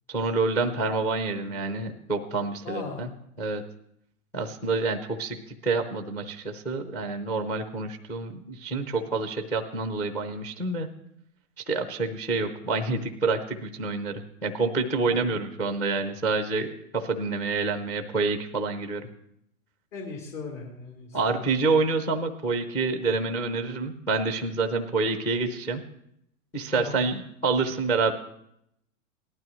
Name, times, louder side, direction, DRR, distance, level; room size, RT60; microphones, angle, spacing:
voice 1, 0.1-3.1 3.4-3.6 4.3-5.4 5.6-10.9 11.7-19.0 21.1-25.8 26.5-28.1, right 3 dB, 5° left, 7 dB, 0.4 m, -27 dB
voice 2, 2.6-3.0 19.9-21.4 26.7-27.0, left 4 dB, 60° left, -2 dB, 3.6 m, -37 dB
18.0 x 12.5 x 3.0 m, 0.75 s
hypercardioid pair, 135°, 43 cm